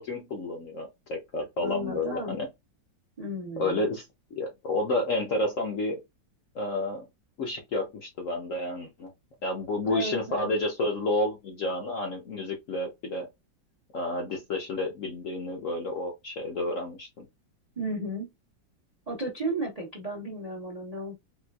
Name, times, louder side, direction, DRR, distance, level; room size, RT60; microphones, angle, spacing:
voice 1, 0.0-2.5 3.6-4.0 4.3-6.0 6.5-7.0 7.4-9.1 9.4-13.3 13.9-17.2, left 2 dB, 60° left, 0.8 m, -30 dB
voice 2, 1.6-2.4 3.2-3.8 9.8-10.5 17.8-18.3 19.1-21.2, right 1 dB, 45° right, 0.5 m, -34 dB
4.3 x 2.3 x 2.3 m
omnidirectional pair, 2.1 m